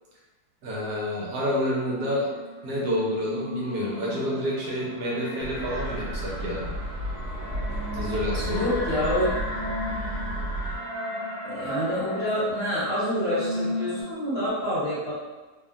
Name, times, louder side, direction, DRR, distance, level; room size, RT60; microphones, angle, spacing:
voice 1, 0.6-2.3 2.6-6.7 7.9-9.0, left 1 dB, 75° right, -5 dB, 1.2 m, -29 dB
sound 1, 2.1-14.0, left 1 dB, 70° left, 1.2 m, -35 dB
sound 2, 5.4-10.8, right 1 dB, 55° right, 1.1 m, -33 dB
voice 2, 8.4-9.3 11.4-15.1, equal, 45° left, -12 dB, 0.9 m, -27 dB
3.1 x 2.1 x 2.4 m, 1.3 s
omnidirectional pair, 2.0 m